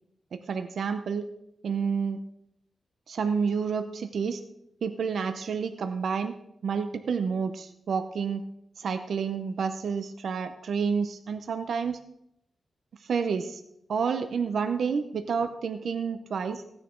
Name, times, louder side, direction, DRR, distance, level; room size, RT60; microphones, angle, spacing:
voice 1, 0.3-1.3 1.6-2.2 3.1-4.4 4.8-6.3 6.6-8.4 8.8-12.0 13.0-13.6 13.9-16.6, right 6 dB, 70° right, 8 dB, 0.7 m, -29 dB
16.5 x 9.9 x 3.8 m, 0.80 s
wide cardioid pair, 115°, 0 cm